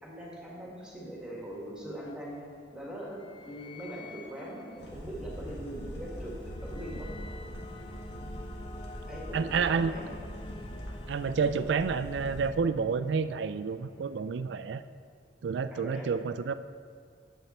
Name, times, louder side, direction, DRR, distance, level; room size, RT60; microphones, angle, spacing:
voice 1, 0.0-2.4 2.7-7.1 9.1-10.1 15.7-16.1, equal, 5° right, -5 dB, 1.6 m, -41 dB
sound 1, 1.5-15.1, left 2 dB, 30° left, 0.4 m, -50 dB
sound 2, 4.8-12.5, equal, 65° left, 1.7 m, -42 dB
voice 2, 9.3-9.9 11.1-14.8 15.4-16.5, right 5 dB, 75° right, 13 dB, 0.3 m, -29 dB
8.9 x 7.1 x 4.2 m, 2.1 s
head